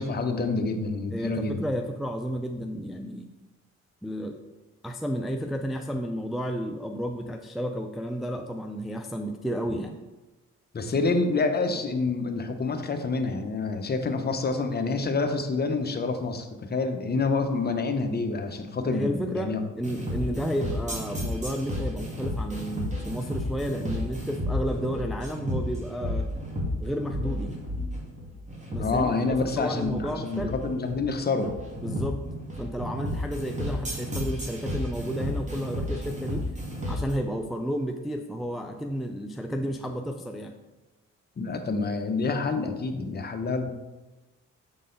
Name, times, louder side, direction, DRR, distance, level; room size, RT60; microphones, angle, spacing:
voice 1, 0.0-1.6 10.7-19.6 28.8-31.5 41.4-43.7, left 3 dB, 35° left, 6 dB, 0.7 m, -27 dB
voice 2, 1.1-3.3 4.0-4.4 4.8-10.0 18.9-26.3 26.8-27.6 28.7-30.6 31.8-32.2 32.6-36.4 36.8-40.5, equal, ahead, 4 dB, 0.3 m, -32 dB
sound 1, 19.8-37.1, left 1 dB, 25° right, 1.9 m, -32 dB
6.6 x 3.9 x 3.8 m, 1.1 s
cardioid pair, 90°, 30 cm